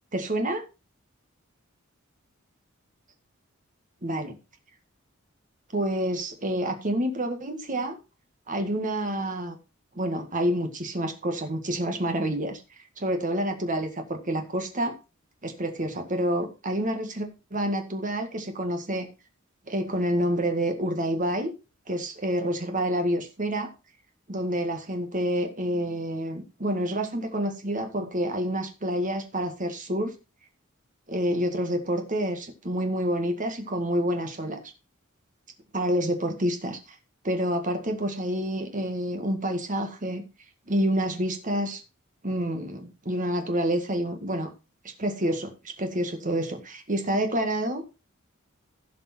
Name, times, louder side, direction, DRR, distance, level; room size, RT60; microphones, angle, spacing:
voice 1, 0.1-0.6 4.0-4.4 5.7-8.0 8.5-9.6 10.0-12.6 13.0-14.9 15.4-19.1 19.7-21.5 21.9-23.7 24.3-30.2 31.1-34.6 35.7-36.8 37.2-40.2 40.7-41.8 42.2-44.5 44.8-48.0, right 1 dB, 40° right, 6 dB, 1.8 m, -28 dB
15.5 x 5.3 x 4.3 m, 0.29 s
head